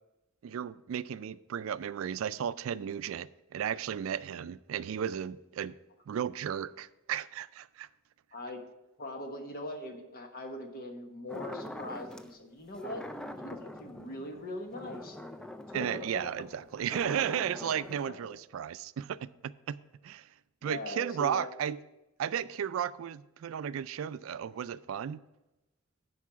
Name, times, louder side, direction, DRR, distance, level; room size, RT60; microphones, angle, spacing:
voice 1, 0.4-5.7 6.1-7.9 15.7-19.8 20.0-20.3 20.6-21.8 22.2-25.2, right 8 dB, 80° right, 0.3 m, -34 dB
voice 2, 8.3-8.6 9.0-13.0 13.4-15.2 15.7-16.3 17.9-18.2 20.6-21.5, left 1 dB, 45° left, 1.2 m, -41 dB
sound 1, 11.3-12.3 12.7-18.0, left 1 dB, 5° left, 0.4 m, -44 dB
11.0 x 4.7 x 5.7 m
head